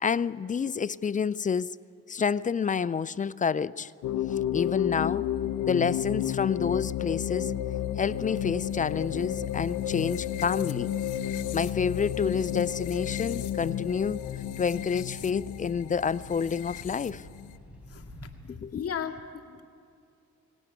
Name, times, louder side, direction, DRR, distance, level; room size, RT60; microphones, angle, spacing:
voice 1, 0.0-1.8 2.1-3.9 4.5-5.3 5.7-7.5 8.0-11.0 11.5-14.2 14.6-17.2 18.5-18.8, left 6 dB, 25° left, 19 dB, 0.4 m, -29 dB
sound 1, 4.0-17.6, left 11 dB, 80° left, 0.8 m, -32 dB
sound 2, 8.2-18.5, equal, 5° right, 4.8 m, -50 dB
voice 2, 17.9-19.6, left 7 dB, 50° left, 3 dB, 2.0 m, -37 dB
18.0 x 18.0 x 10.0 m, 2.5 s
cardioid pair, 90°, 30 cm